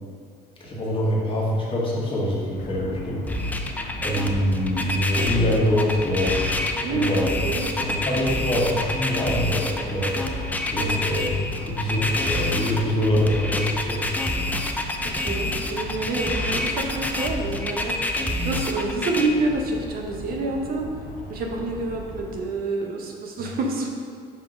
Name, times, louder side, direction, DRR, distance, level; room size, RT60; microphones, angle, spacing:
voice 1, 0.6-3.3 4.0-6.4 6.9-7.3 7.7-10.1 10.7-14.1, left 1 dB, 30° left, -4 dB, 1.4 m, -24 dB
sound 1, 2.6-22.4, left 1 dB, 55° left, 0.7 m, -37 dB
sound 2, 3.3-19.3, left 2 dB, 10° left, 0.4 m, -27 dB
voice 2, 6.8-8.1 8.6-8.7 10.8-11.0 15.1-20.9 21.3-23.9, right 3 dB, 60° right, 1 dB, 0.8 m, -28 dB
5.2 x 3.7 x 5.0 m, 2.1 s
cardioid pair, 110°, 17 cm